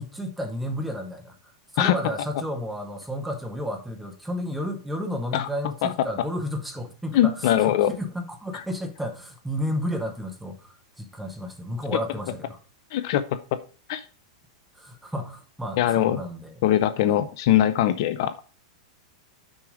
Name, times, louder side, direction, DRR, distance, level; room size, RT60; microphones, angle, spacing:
voice 1, 0.0-12.6 14.7-16.5 17.0-17.2, equal, ahead, 0.7 m, -32 dB
voice 2, 7.1-8.0 8.5-8.6 12.9-13.4 13.9-14.0 15.8-16.2 16.6-18.4, left 12 dB, 45° left, 0.4 m, -21 dB
6.2 x 4.8 x 4.9 m
supercardioid pair, 170°, 3 cm